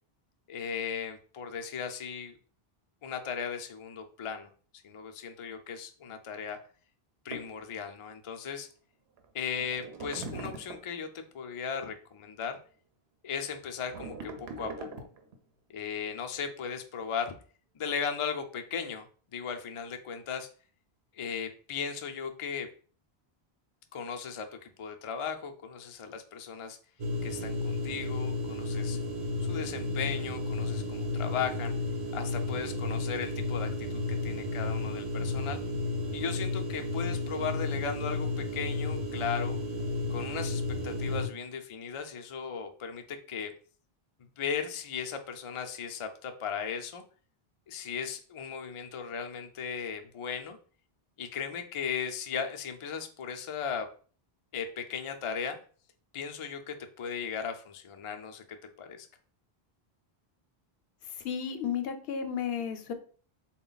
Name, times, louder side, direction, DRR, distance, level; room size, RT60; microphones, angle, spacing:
voice 1, 0.5-2.4 3.0-4.5 4.8-6.6 7.2-8.7 9.3-12.6 13.2-15.1 15.7-17.4 17.8-19.1 19.3-20.5 21.2-22.7 23.9-26.8 27.2-29.0 29.5-31.7 32.1-35.6 36.1-39.6 40.1-43.5 44.4-47.0 47.7-50.6 51.2-53.9 54.5-55.6 56.1-59.1, left 6 dB, 55° left, 5 dB, 0.3 m, -37 dB
sound 1, 7.3-7.5 9.2-9.3 9.6-11.0 13.5-15.3, right 3 dB, 85° right, 0.9 m, -42 dB
sound 2, 27.0-41.3, left 2 dB, 50° right, 0.6 m, -32 dB
voice 2, 61.2-62.9, left 7 dB, 75° left, 8 dB, 0.8 m, -33 dB
3.7 x 2.2 x 3.9 m, 0.42 s
omnidirectional pair, 1.0 m